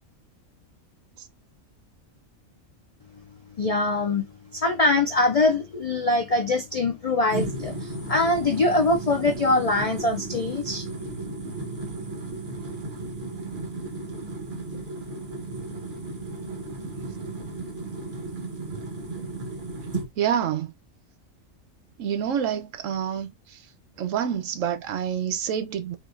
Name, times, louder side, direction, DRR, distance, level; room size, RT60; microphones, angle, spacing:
voice 1, 3.6-4.3 4.5-10.9, left 2 dB, 65° left, 0.3 m, -23 dB
sound 1, 7.3-20.1, right 2 dB, 45° right, 1.0 m, -34 dB
voice 2, 16.9-17.6 18.6-18.8 19.1-19.3 20.2-20.7 22.0-23.6 24.0-26.0, right 9 dB, 75° right, 1.0 m, -28 dB
3.8 x 2.6 x 2.4 m
omnidirectional pair, 1.4 m